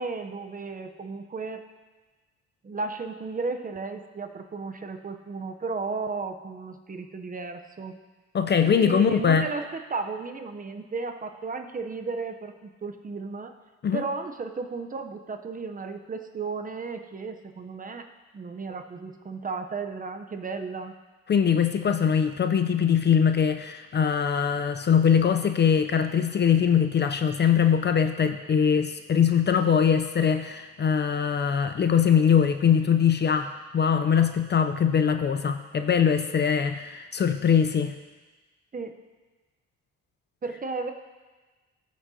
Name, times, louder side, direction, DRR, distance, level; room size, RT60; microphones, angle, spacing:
voice 1, 0.0-1.6 2.6-8.0 8.6-13.5 13.9-18.1 18.3-20.9 38.7-39.0 40.4-40.9, right 4 dB, 30° right, 6 dB, 0.7 m, -34 dB
voice 2, 8.3-9.5 13.8-14.0 21.3-38.0, left 7 dB, 35° left, 8 dB, 0.5 m, -22 dB
13.5 x 6.2 x 2.7 m, 1.3 s
cardioid pair, 90°, 30 cm